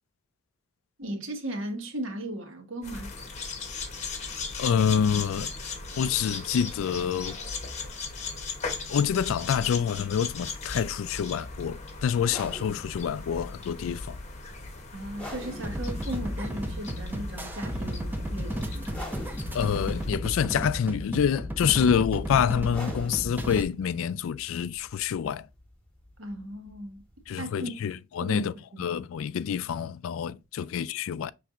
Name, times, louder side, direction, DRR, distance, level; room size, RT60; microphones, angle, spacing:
voice 1, 1.0-3.1 14.9-19.0 26.2-27.0 27.4-27.7 28.2-28.9, right 1 dB, 70° right, 1.2 m, -36 dB
sound 1, 2.8-20.1, left 4 dB, 35° left, 0.8 m, -38 dB
voice 2, 4.6-5.5 6.0-7.4 8.9-14.2 19.4-25.5 27.3-28.5 28.8-31.3, left 8 dB, 75° left, 0.3 m, -27 dB
sound 2, 12.2-27.5, left 1 dB, 5° left, 1.3 m, -46 dB
sound 3, 15.6-23.6, equal, 10° right, 0.5 m, -33 dB
5.9 x 3.3 x 2.4 m
head